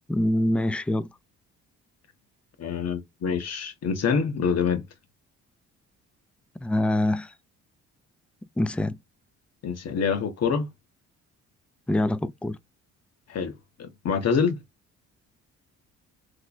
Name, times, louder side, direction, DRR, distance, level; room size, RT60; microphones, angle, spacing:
voice 1, 0.1-1.1 6.6-7.3 8.6-9.0 11.9-12.6, left 1 dB, 5° left, 0.3 m, -25 dB
voice 2, 2.6-4.8 9.6-10.7 13.3-13.5 13.8-14.6, left 6 dB, 55° left, 1.0 m, -26 dB
3.2 x 2.2 x 3.9 m
cardioid pair, 90°, 30 cm